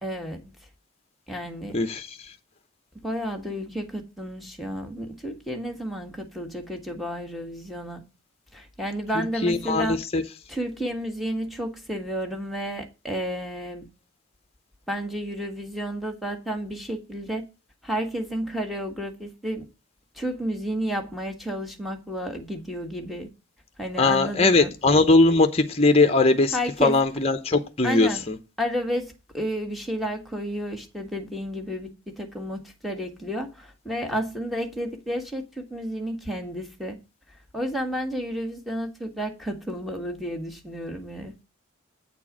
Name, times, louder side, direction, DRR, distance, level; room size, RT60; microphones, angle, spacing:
voice 1, 0.0-0.5 1.3-1.8 3.0-8.0 8.5-10.0 10.5-13.9 14.9-17.4 17.8-19.7 20.2-23.3 23.8-24.7 26.5-26.9 27.8-28.2 28.6-37.0 37.5-41.3, equal, ahead, 1.6 m, -31 dB
voice 2, 1.7-2.3 9.4-10.2 24.0-26.6 26.8-28.4, left 3 dB, 30° left, 0.7 m, -20 dB
8.8 x 4.5 x 7.3 m
head